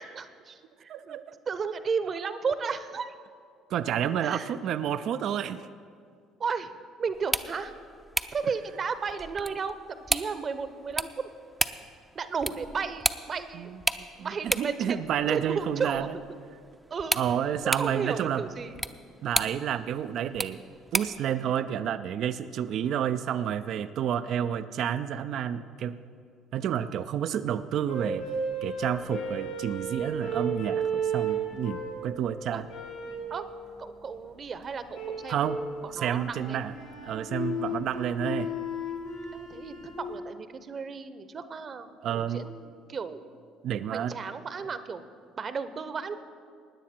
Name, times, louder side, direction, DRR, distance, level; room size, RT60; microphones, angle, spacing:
voice 1, 0.0-1.2 1.5-3.1 4.2-4.5 6.4-6.7 7.0-7.7 8.3-9.7 10.1-11.3 12.1-13.7 14.2-16.1 16.9-17.2 17.8-18.8 32.5-32.6 33.3-33.4 33.8-36.6 39.3-43.2 43.9-45.0 45.4-46.2, right 5 dB, 45° right, 12 dB, 0.8 m, -34 dB
voice 2, 0.9-1.4 3.7-5.6 13.5-16.1 17.1-18.4 19.2-20.6 20.9-26.0 26.5-28.3 28.6-32.6 35.3-35.6 35.9-36.7 37.0-38.5 42.0-42.5 43.6-44.1, right 9 dB, 60° right, 12 dB, 0.4 m, -30 dB
sound 1, 7.1-21.3, right 1 dB, 10° right, 0.5 m, -35 dB
sound 2, 27.9-32.1 32.7-33.3 34.9-35.6 36.1-40.1, right 2 dB, 85° left, 2.7 m, -33 dB
17.0 x 9.8 x 4.4 m, 2.3 s
hypercardioid pair, 60°, 0 cm